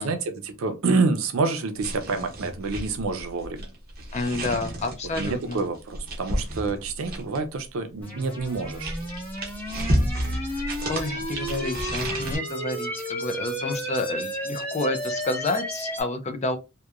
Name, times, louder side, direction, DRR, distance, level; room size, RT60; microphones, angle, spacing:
voice 1, 0.0-3.7 5.2-9.0, right 4 dB, 70° right, 0.5 m, -27 dB
sound 1, 1.8-7.5 8.4-12.4, right 1 dB, 45° right, 0.9 m, -31 dB
voice 2, 4.1-5.6 10.2-10.6 10.9-16.6, left 2 dB, 30° left, 0.4 m, -30 dB
sound 2, 8.0-16.0, equal, 10° left, 1.0 m, -33 dB
2.9 x 2.2 x 2.3 m
head